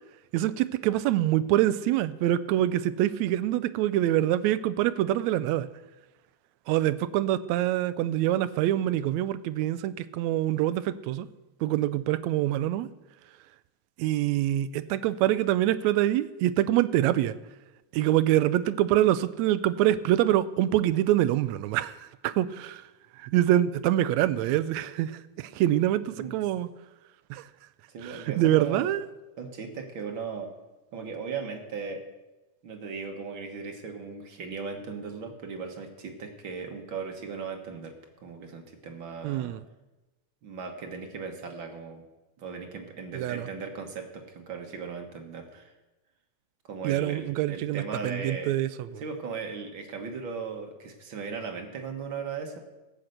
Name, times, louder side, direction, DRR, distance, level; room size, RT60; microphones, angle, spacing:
voice 1, 0.3-5.7 6.7-11.3 11.6-12.9 14.0-17.3 17.9-22.8 23.2-26.7 27.3-27.5 28.0-29.1 39.2-39.6 43.1-43.5 46.8-49.0, right 13 dB, 80° right, 15 dB, 1.8 m, -25 dB
voice 2, 27.9-28.9 29.4-30.5 30.9-32.0 32.6-37.9 38.2-39.5 40.4-42.0 42.4-45.7 46.6-48.5 49.0-52.6, right 5 dB, 50° right, 4 dB, 1.8 m, -37 dB
17.5 x 6.6 x 7.9 m, 1.1 s
omnidirectional pair, 3.4 m